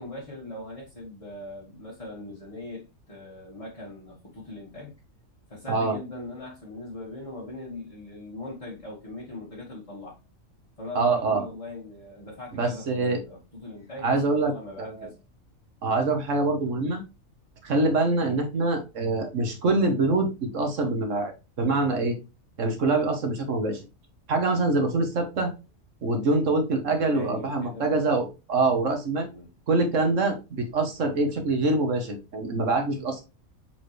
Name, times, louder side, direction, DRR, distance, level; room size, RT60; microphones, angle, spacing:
voice 1, 0.0-4.9 5.5-10.2 10.8-15.1 15.9-16.0 18.1-18.5 26.8-28.3 29.1-29.5, left 2 dB, 25° left, 1.5 m, -40 dB
voice 2, 10.9-11.4 12.6-13.2 14.0-14.5 14.8-14.9 15.8-17.0 17.6-21.3 21.6-22.2 22.6-23.8 24.3-25.5 26.0-29.3 29.7-33.2, right 3 dB, 65° right, 1.6 m, -25 dB
6.9 x 4.4 x 3.2 m
omnidirectional pair, 1.4 m